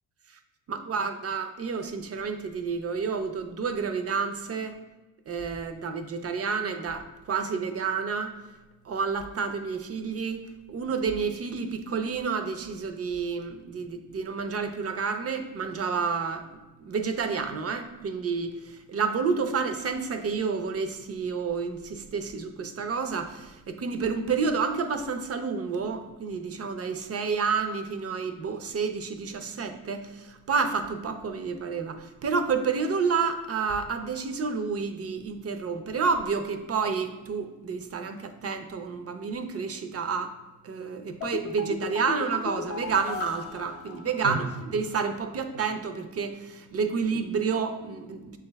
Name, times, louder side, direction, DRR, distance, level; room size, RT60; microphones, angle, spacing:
voice 1, 0.7-4.8 5.3-8.4 8.8-16.5 16.8-40.3 40.6-48.4, right 5 dB, 30° right, 8 dB, 0.5 m, -30 dB
sound 1, 41.2-44.6 44.9-45.0, left 6 dB, 30° left, 0.5 m, -36 dB
6.2 x 2.3 x 3.3 m, 1.2 s
hypercardioid pair, 55°, 47 cm